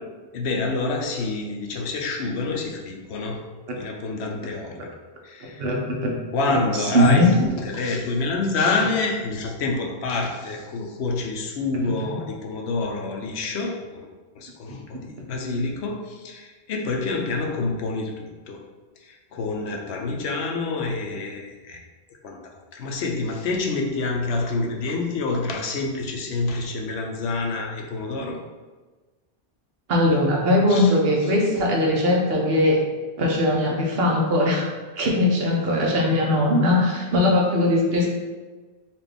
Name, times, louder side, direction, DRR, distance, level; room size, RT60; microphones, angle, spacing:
voice 1, 0.3-3.5 3.7-4.9 5.2-5.7 6.3-14.1 14.3-18.6 19.0-21.8 22.2-28.4 30.7-31.0, left 3 dB, 80° left, 1 dB, 0.9 m, -27 dB
voice 2, 6.7-7.4 29.9-32.8 33.2-34.7 35.0-38.1, left 1 dB, 65° right, -1 dB, 1.0 m, -20 dB
4.2 x 2.5 x 3.3 m, 1.3 s
omnidirectional pair, 1.1 m